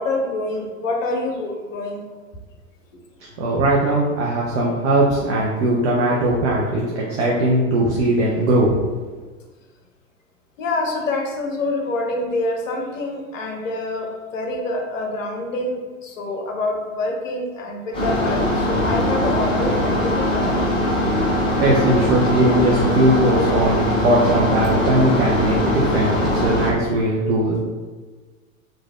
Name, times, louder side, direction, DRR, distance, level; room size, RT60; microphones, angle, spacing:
voice 1, 0.0-2.0 10.6-20.7, left 2 dB, 65° left, 1 dB, 0.7 m, -26 dB
voice 2, 3.4-8.8 21.6-27.6, right 1 dB, 55° right, -4 dB, 0.6 m, -19 dB
sound 1, 17.9-26.7, left 1 dB, 10° left, 0.9 m, -21 dB
3.1 x 2.5 x 2.4 m, 1.3 s
figure-of-eight pair, 90°, 42 cm